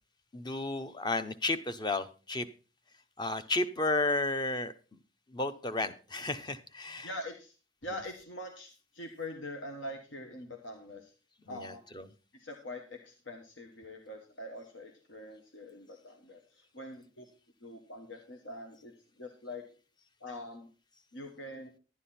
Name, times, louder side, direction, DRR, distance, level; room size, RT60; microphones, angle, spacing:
voice 1, 0.3-2.5 3.2-4.7 5.3-7.1 11.5-12.1, left 2 dB, 20° left, 11 dB, 0.7 m, -32 dB
voice 2, 7.0-7.5 7.8-11.1 11.5-11.8 12.3-17.2 17.6-19.6 20.2-20.7 21.1-21.7, left 1 dB, 70° left, 4 dB, 1.3 m, -44 dB
11.5 x 9.7 x 4.2 m, 0.34 s
head